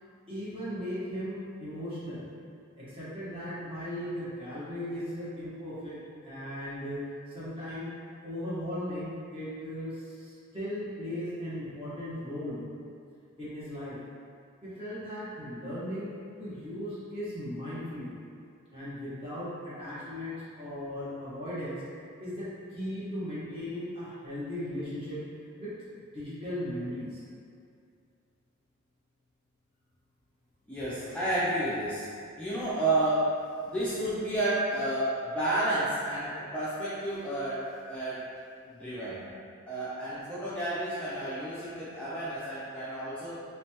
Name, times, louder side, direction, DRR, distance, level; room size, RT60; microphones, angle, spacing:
voice 1, 0.3-2.2 2.8-7.0 7.3-7.9 8.2-12.6 13.4-14.0 14.6-16.1 16.4-18.1 18.7-21.8 22.2-25.2 25.6-25.7 26.1-27.2, equal, 25° right, -11 dB, 1.2 m, -37 dB
voice 2, 30.7-32.1 32.4-33.3 33.6-38.2 38.7-39.2 39.7-43.4, right 1 dB, 5° left, -12 dB, 0.5 m, -31 dB
3.3 x 3.2 x 2.9 m, 2.3 s
head